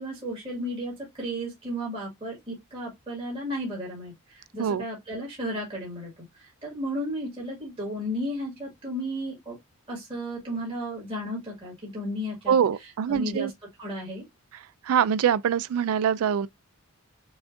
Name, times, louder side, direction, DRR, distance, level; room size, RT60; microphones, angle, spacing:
voice 1, 0.0-6.1 6.4-9.6 9.9-12.6 13.1-13.5 13.8-14.2, equal, 25° right, 1.9 m, -34 dB
voice 2, 12.5-13.5 14.8-16.5, right 8 dB, 70° right, 0.3 m, -24 dB
6.0 x 2.5 x 2.5 m
head